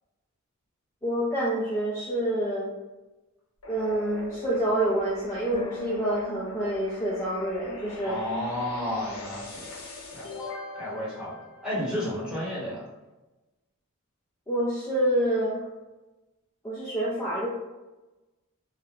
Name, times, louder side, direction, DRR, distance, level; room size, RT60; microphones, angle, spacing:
voice 1, 1.0-2.7 3.7-8.1 14.5-15.6 16.6-17.5, right 1 dB, 15° left, -8 dB, 0.4 m, -27 dB
sound 1, 3.6-12.3, left 2 dB, 65° left, 0.6 m, -42 dB
sound 2, 5.5-8.8 9.1-9.2, right 1 dB, 30° left, 1.1 m, -46 dB
voice 2, 8.0-9.7 10.1-10.3 10.8-11.4 11.6-12.9, left 1 dB, 5° right, -8 dB, 0.8 m, -31 dB
2.3 x 2.1 x 3.0 m, 1.1 s
head